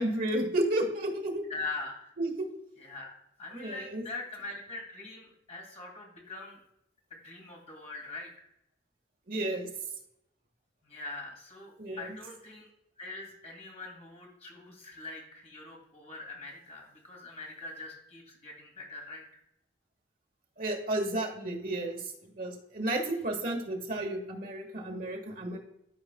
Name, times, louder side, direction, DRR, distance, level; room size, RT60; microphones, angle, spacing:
voice 1, 0.0-1.4 2.2-2.5 3.5-4.0 9.3-9.7 11.8-12.2 20.6-25.6, right 1 dB, 45° right, 1 dB, 1.4 m, -32 dB
voice 2, 1.5-2.1 2.8-3.1 3.4-6.6 7.1-8.5 10.8-12.7 13.0-19.2, left 3 dB, 35° left, -1 dB, 2.1 m, -43 dB
13.0 x 4.9 x 2.2 m, 0.81 s
head